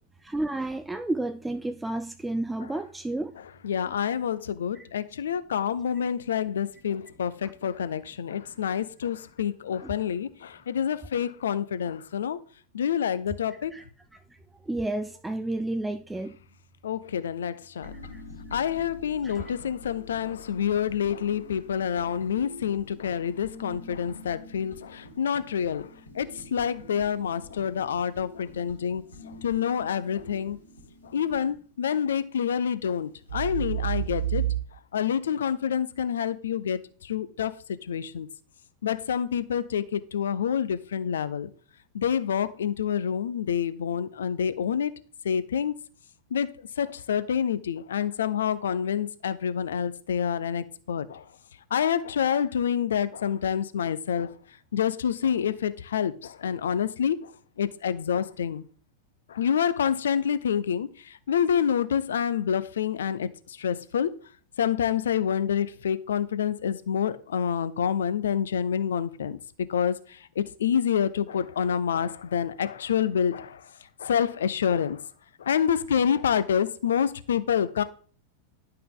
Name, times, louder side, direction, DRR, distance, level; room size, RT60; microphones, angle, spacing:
voice 1, 0.2-3.3 4.8-4.9 7.4-7.5 9.8-9.9 13.5-13.8 14.1-14.2 14.7-16.3 18.1-18.2 19.2-19.5, right 2 dB, 5° right, 0.4 m, -31 dB
voice 2, 3.6-12.4 12.7-13.7 16.8-17.9 18.5-25.9 26.1-29.0 29.4-30.6 31.1-34.4 34.9-37.6 37.9-38.3 38.8-41.5 41.9-44.9 45.2-45.7 46.3-46.5 46.8-51.2 51.7-54.3 54.7-57.3 57.6-58.6 59.3-63.3 63.6-64.1 64.6-69.4 69.7-70.0 70.4-73.6 74.0-75.0 75.4-77.8, left 8 dB, 65° left, 0.6 m, -27 dB
sound 1, 17.8-31.5 33.3-34.6, right 8 dB, 80° left, 2.1 m, -38 dB
11.0 x 5.6 x 3.8 m
figure-of-eight pair, 90°, 0 cm